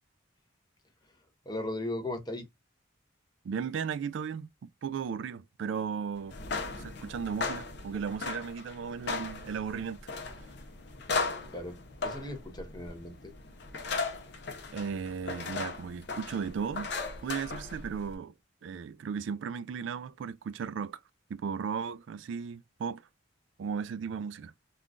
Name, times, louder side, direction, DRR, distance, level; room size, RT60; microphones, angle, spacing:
voice 1, 1.1-2.5 11.5-13.3, left 1 dB, 20° left, 0.7 m, -38 dB
voice 2, 3.4-6.4 6.7-10.1 14.7-16.9 17.2-18.3 18.6-21.0 21.3-23.0 23.6-24.5, right 6 dB, 70° right, 0.3 m, -36 dB
sound 1, 6.2-18.1, left 4 dB, 60° left, 0.7 m, -37 dB
3.6 x 2.4 x 2.4 m
head